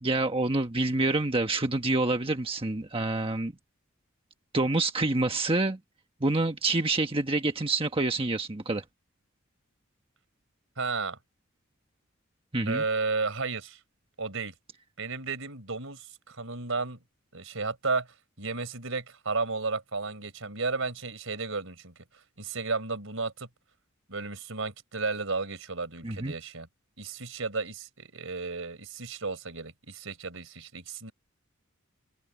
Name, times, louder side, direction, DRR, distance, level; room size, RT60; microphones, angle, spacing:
voice 1, 0.0-3.5 4.5-5.8 6.2-8.8 12.5-12.8 26.0-26.3, right 2 dB, 25° right, 1.3 m, -27 dB
voice 2, 10.8-11.2 12.7-13.8 14.2-14.5 15.0-17.0 17.3-18.1 18.4-21.9 22.4-23.5 24.1-26.7 27.0-31.1, right 4 dB, 70° right, 4.6 m, -33 dB
open air
head